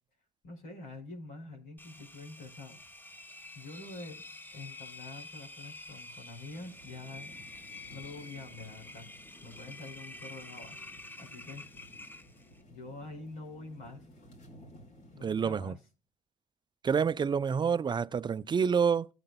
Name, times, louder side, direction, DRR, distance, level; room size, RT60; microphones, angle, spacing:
voice 1, 0.4-2.8 3.5-4.2 4.5-7.3 7.9-9.1 9.4-10.8 11.2-11.6 12.7-14.0 15.1-15.8, left 2 dB, 75° left, 5.0 m, -46 dB
Engine, 1.8-12.6, left 2 dB, 10° left, 1.0 m, -48 dB
sound 1, 6.5-15.5, equal, 60° left, 4.9 m, -56 dB
voice 2, 15.2-15.8 16.8-19.1, right 6 dB, 30° right, 0.5 m, -28 dB
16.5 x 8.9 x 2.2 m
supercardioid pair, 70°, 16 cm